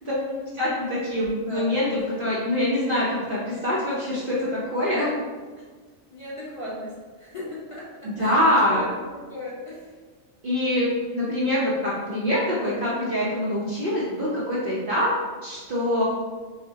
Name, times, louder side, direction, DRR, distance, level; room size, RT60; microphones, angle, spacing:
voice 1, 0.0-0.8 1.3-1.7 6.1-6.9 7.2-7.4 7.7-7.8 8.2-8.4 8.7-9.9, left 1 dB, 25° left, -9 dB, 1.2 m, -37 dB
voice 2, 0.5-5.1 8.0-8.8 10.4-15.1 15.4-16.0, left 1 dB, 50° right, -7 dB, 0.8 m, -24 dB
5.7 x 2.1 x 2.7 m, 1.4 s
omnidirectional pair, 1.4 m